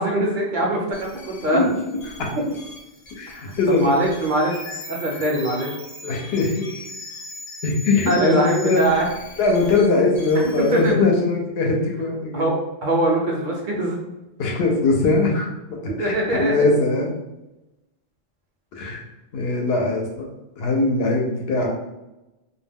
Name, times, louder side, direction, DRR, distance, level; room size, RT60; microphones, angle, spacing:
voice 1, 0.0-1.6 3.3-4.6 4.9-5.7 8.1-9.1 10.4-11.0 12.3-14.0 15.9-16.7, right 1 dB, 60° right, -1 dB, 0.6 m, -22 dB
sound 1, 0.9-10.9, left 1 dB, 45° left, 0.7 m, -40 dB
voice 2, 1.5-2.0 3.2-3.9 6.0-6.5 7.6-8.8 9.4-12.5 14.4-15.5 16.0-16.1 16.4-17.1 18.8-19.0 19.3-20.3 20.6-21.7, left 3 dB, 75° left, 0 dB, 0.8 m, -21 dB
2.2 x 2.2 x 3.4 m, 0.99 s
omnidirectional pair, 1.1 m